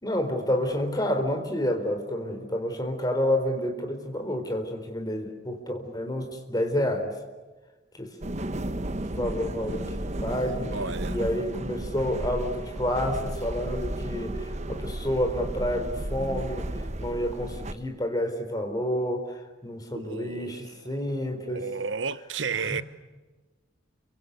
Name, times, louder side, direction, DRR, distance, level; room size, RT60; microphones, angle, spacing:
voice 1, 0.0-7.2 7.9-8.2 9.0-10.0 10.2-10.8 11.1-21.7 22.6-22.8, left 1 dB, 20° left, 4.1 m, -29 dB
sound 1, 8.2-17.7, right 1 dB, 35° right, 1.1 m, -33 dB
voice 2, 10.7-11.2 19.9-20.7 21.5-22.8, right 5 dB, 75° right, 1.0 m, -32 dB
29.5 x 24.5 x 8.2 m
head